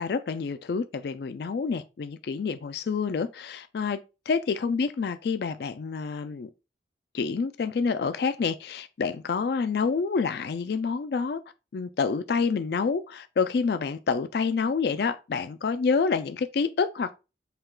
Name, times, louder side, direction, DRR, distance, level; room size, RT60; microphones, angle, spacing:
voice 1, 0.0-4.0 4.3-6.5 7.1-11.4 11.7-17.1, left 5 dB, 60° left, 0.3 m, -28 dB
5.6 x 2.4 x 3.6 m
head